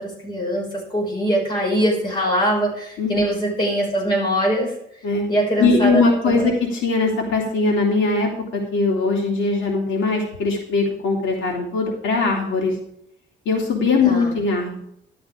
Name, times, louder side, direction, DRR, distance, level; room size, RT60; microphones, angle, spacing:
voice 1, 0.0-4.7 5.3-6.5 14.0-14.3, right 1 dB, 25° left, -2 dB, 5.9 m, -22 dB
voice 2, 5.6-12.8 13.4-14.8, left 3 dB, 80° left, -1 dB, 3.1 m, -20 dB
13.0 x 12.5 x 3.7 m, 0.73 s
cardioid pair, 130°, 19 cm